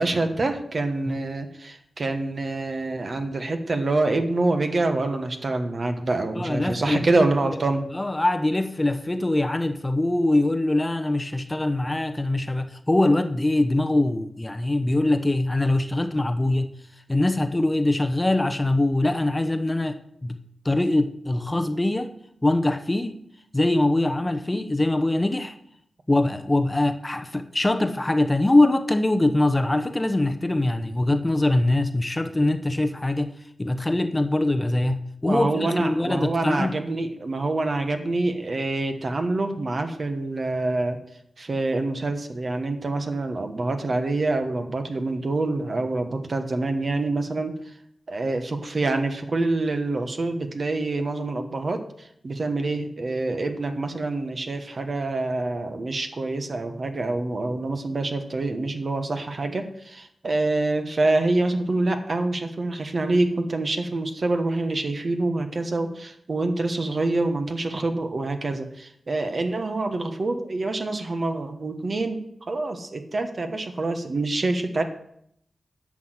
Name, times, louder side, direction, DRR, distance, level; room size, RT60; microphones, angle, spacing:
voice 1, 0.0-7.8 35.3-41.0 41.4-47.6 48.1-74.8, right 2 dB, 50° right, 6 dB, 1.4 m, -26 dB
voice 2, 6.3-7.2 7.9-16.7 17.1-20.0 20.2-20.4 20.6-22.1 22.4-23.2 23.5-25.6 26.1-33.3 33.6-36.8, left 2 dB, 20° left, 8 dB, 0.8 m, -23 dB
11.0 x 6.3 x 7.9 m, 0.72 s
wide cardioid pair, 90°, 0 cm